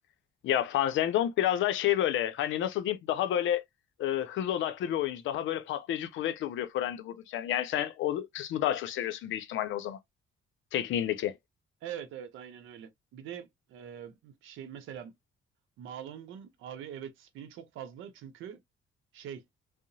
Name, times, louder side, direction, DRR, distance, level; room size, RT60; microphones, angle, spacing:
voice 1, 0.4-3.6 4.0-10.0 10.7-11.4, left 11 dB, 75° left, 0.5 m, -30 dB
voice 2, 11.8-15.1 15.8-18.6 19.1-19.4, right 9 dB, 85° right, 0.6 m, -43 dB
2.8 x 2.0 x 2.6 m
cardioid pair, 90°, 20 cm